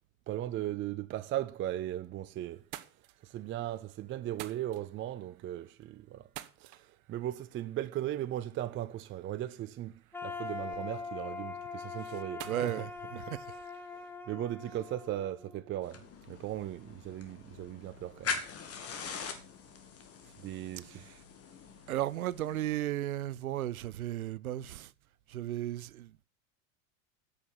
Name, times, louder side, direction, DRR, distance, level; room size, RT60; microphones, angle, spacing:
voice 1, 0.3-2.6 3.2-6.3 6.6-6.8 7.1-9.9 10.2-12.7 14.3-18.4 20.4-20.9, right 13 dB, 30° right, 0.6 m, -37 dB
sound 1, 2.0-2.2 2.5-14.1, right 15 dB, 50° right, 1.1 m, -54 dB
sound 2, 10.1-16.0, left 5 dB, 5° left, 1.2 m, -42 dB
voice 2, 12.4-13.6 20.8-21.2 21.9-24.9 25.3-26.1, right 13 dB, 90° right, 0.6 m, -35 dB
sound 3, 15.8-22.8, left 6 dB, 35° left, 2.3 m, -42 dB
8.5 x 6.6 x 8.1 m
hypercardioid pair, 95°, 41 cm